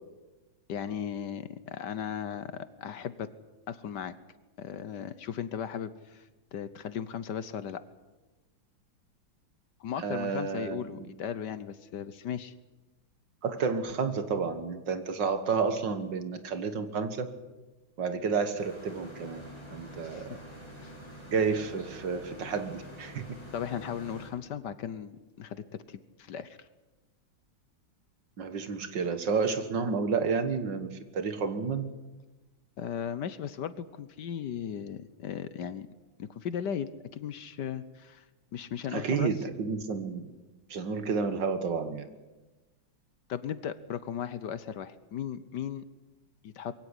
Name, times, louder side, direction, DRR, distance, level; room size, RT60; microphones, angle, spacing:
voice 1, 0.7-3.3 3.7-4.1 4.6-7.8 9.8-12.5 20.0-20.3 20.8-20.9 23.5-26.7 32.8-35.9 36.2-38.2 38.5-39.3 43.3-45.8 46.4-46.7, left 8 dB, 65° left, 15 dB, 1.4 m, -37 dB
voice 2, 10.0-11.1 13.4-17.3 18.0-19.4 19.7-20.3 21.3-23.4 28.4-31.9 38.9-40.3 40.7-42.1, right 5 dB, 65° right, 10 dB, 2.2 m, -30 dB
sound 1, 18.6-24.3, equal, 10° left, 7.2 m, -47 dB
22.5 x 17.0 x 9.9 m, 1.1 s
omnidirectional pair, 2.2 m